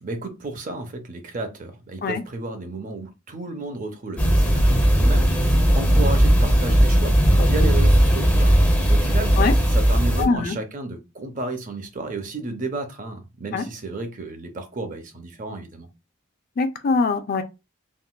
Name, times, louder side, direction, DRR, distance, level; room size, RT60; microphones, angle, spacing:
voice 1, 0.0-8.6 8.9-15.9, right 2 dB, 35° right, 0.5 m, -33 dB
sound 1, 4.2-10.3, equal, 5° left, 0.7 m, -17 dB
voice 2, 10.2-10.6 13.5-13.6 16.6-17.4, left 4 dB, 40° left, 0.3 m, -22 dB
3.7 x 2.3 x 2.3 m
head